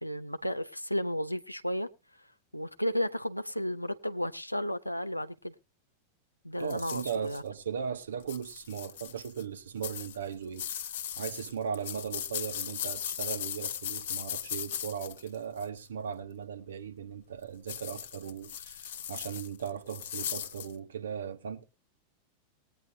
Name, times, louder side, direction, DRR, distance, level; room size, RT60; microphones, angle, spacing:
voice 1, 0.0-1.9 2.5-5.5 6.4-7.4, equal, 90° left, 0.6 m, -33 dB
voice 2, 6.6-21.6, right 7 dB, 65° right, 1.3 m, -38 dB
sound 1, 6.7-7.4 8.2-9.4 9.8-15.8 17.7-20.7, left 10 dB, 55° left, 1.0 m, -38 dB
20.0 x 9.0 x 2.7 m
figure-of-eight pair, 90°, 0 cm